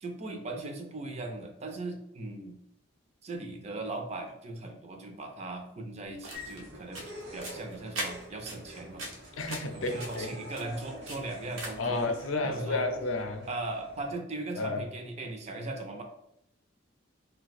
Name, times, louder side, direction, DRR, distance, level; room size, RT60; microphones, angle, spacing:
voice 1, 0.0-2.6 3.2-7.0 7.3-9.1 9.7-12.0 12.4-12.9 13.4-16.0, right 2 dB, 35° right, 3 dB, 0.4 m, -38 dB
sound 1, 6.0-12.0, right 2 dB, 85° right, 0.9 m, -42 dB
sound 2, 6.3-14.2, equal, 55° right, 0.9 m, -47 dB
voice 2, 9.4-10.3 11.8-13.5 14.6-14.8, left 2 dB, 85° left, 4 dB, 0.5 m, -31 dB
2.5 x 2.2 x 4.0 m, 0.78 s
head